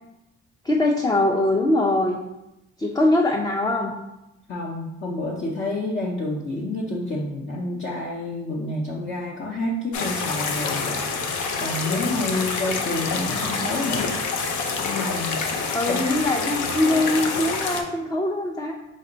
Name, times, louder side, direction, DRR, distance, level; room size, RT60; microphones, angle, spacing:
voice 1, 0.6-2.2 2.8-3.9 15.7-18.7, left 1 dB, 15° left, 1 dB, 0.3 m, -22 dB
voice 2, 4.5-14.1 14.8-15.4 15.9-16.0, left 2 dB, 40° left, -3 dB, 0.7 m, -29 dB
sound 1, 9.9-17.8, left 4 dB, 85° left, 0.6 m, -27 dB
5.2 x 2.1 x 3.8 m, 0.94 s
cardioid pair, 90°, 30 cm